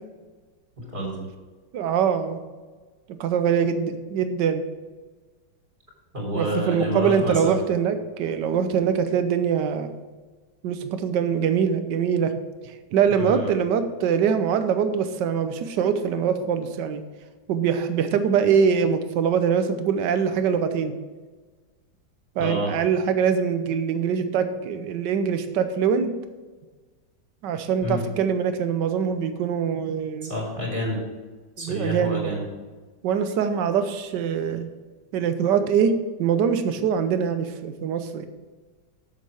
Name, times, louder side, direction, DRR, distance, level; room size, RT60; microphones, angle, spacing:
voice 1, 0.8-1.3 6.1-7.6 13.2-13.5 22.4-22.7 27.8-28.0 30.2-31.0 31.6-32.4, equal, 25° right, -3 dB, 3.3 m, -28 dB
voice 2, 1.7-2.4 3.2-4.6 6.3-9.9 10.6-12.3 12.9-17.0 17.5-20.9 22.4-26.1 27.4-30.3 31.6-32.5 33.0-34.7 35.1-38.3, right 7 dB, 75° right, 9 dB, 1.4 m, -23 dB
7.5 x 7.5 x 4.9 m, 1.3 s
omnidirectional pair, 1.9 m